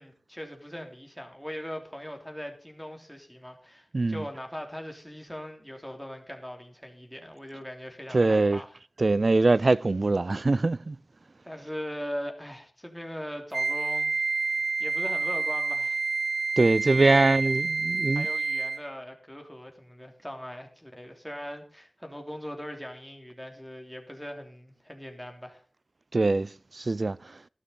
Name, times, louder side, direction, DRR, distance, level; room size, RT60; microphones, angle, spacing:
voice 1, 0.0-8.8 11.4-14.1 14.8-16.1 16.9-17.6 18.1-25.6, equal, ahead, 3.2 m, -40 dB
voice 2, 8.1-8.6 9.0-10.9 16.6-18.3 26.1-26.5 26.8-27.2, right 3 dB, 50° right, 0.5 m, -22 dB
Wind instrument woodwind instrument, 13.5-18.9, right 4 dB, 65° right, 1.0 m, -28 dB
13.5 x 12.5 x 4.0 m
wide cardioid pair, 80°, 0 cm